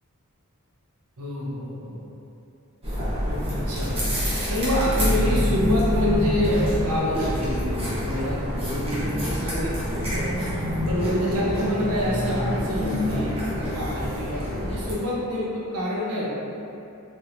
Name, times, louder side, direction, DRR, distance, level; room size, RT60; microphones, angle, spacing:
voice 1, 1.2-2.1 3.3-4.0 4.5-16.3, equal, 80° right, -6 dB, 0.8 m, -27 dB
sound 1, 2.8-14.9, equal, 25° right, 0.9 m, -26 dB
3.6 x 2.9 x 2.6 m, 2.7 s
head